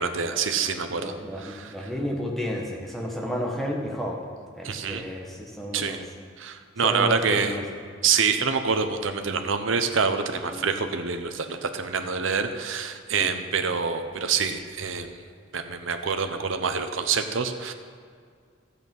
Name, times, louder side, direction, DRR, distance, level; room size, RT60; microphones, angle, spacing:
voice 1, 0.0-1.9 4.6-5.0 5.7-6.0 6.4-7.6 8.0-15.2 15.5-17.7, right 5 dB, 85° right, 7 dB, 0.8 m, -26 dB
voice 2, 0.9-4.2 4.6-6.0 6.8-7.6 10.5-10.6 13.2-13.3, equal, ahead, -2 dB, 1.4 m, -31 dB
12.5 x 8.2 x 5.4 m, 2.1 s
head